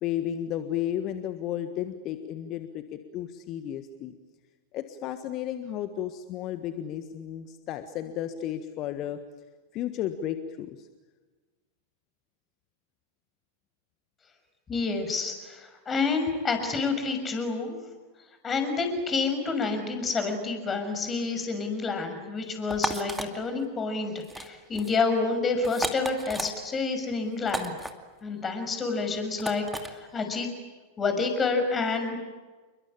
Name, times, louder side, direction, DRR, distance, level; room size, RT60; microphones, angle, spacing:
voice 1, 0.0-4.1 4.7-9.2 9.7-10.9, left 11 dB, 35° left, 9 dB, 1.5 m, -33 dB
voice 2, 14.7-17.8 18.4-27.7 28.2-30.5 31.0-32.2, left 4 dB, 20° left, 6 dB, 6.3 m, -28 dB
sound 1, 22.7-23.3 24.2-24.5 24.7-25.0 25.6-26.5 27.5-27.9 29.4-29.9, right 1 dB, 5° right, 2.4 m, -33 dB
29.5 x 23.0 x 8.8 m, 1.3 s
figure-of-eight pair, 90°, 0 cm